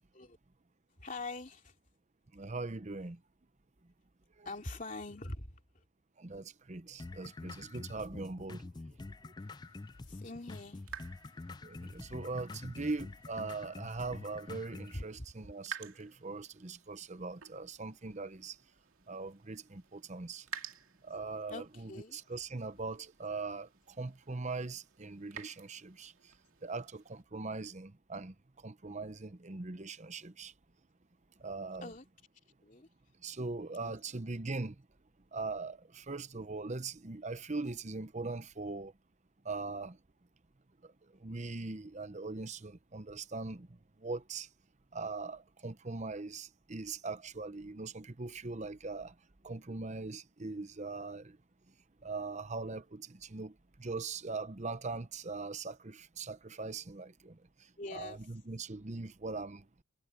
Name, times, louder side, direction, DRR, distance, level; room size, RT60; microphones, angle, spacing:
voice 1, 1.0-1.7 4.4-5.8 10.1-11.0 14.9-15.5 21.5-22.3 31.8-32.0 32.6-32.9 33.8-34.0 57.8-58.2, left 2 dB, 35° left, 3.0 m, -44 dB
voice 2, 2.3-3.2 6.2-8.6 11.6-18.5 19.1-20.4 21.1-23.7 24.0-26.1 26.6-28.3 28.6-30.5 31.4-31.9 33.2-34.7 35.3-38.9 39.5-40.0 41.2-43.7 44.0-44.5 44.9-49.1 49.4-51.4 52.0-53.5 53.8-57.3 57.9-59.6, right 3 dB, 30° right, 0.8 m, -41 dB
sound 1, 7.0-15.0, left 2 dB, 20° left, 0.3 m, -47 dB
sound 2, 9.4-27.2, right 6 dB, 70° right, 2.6 m, -53 dB
head